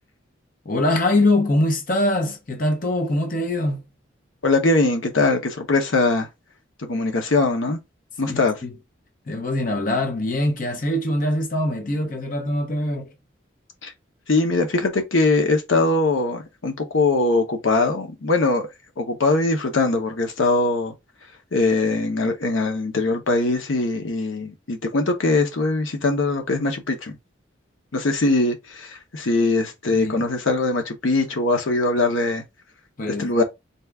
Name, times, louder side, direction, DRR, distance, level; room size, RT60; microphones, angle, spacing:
voice 1, 0.6-3.8 8.2-8.7 9.3-13.1 29.9-30.3 33.0-33.4, left 1 dB, 45° left, 0.8 m, -23 dB
voice 2, 4.4-6.3 6.8-7.8 8.2-8.6 13.8-13.9 14.3-18.7 19.0-20.9 21.5-27.2 27.9-32.4 33.1-33.4, left 2 dB, 90° left, 0.9 m, -21 dB
4.1 x 2.4 x 3.4 m
head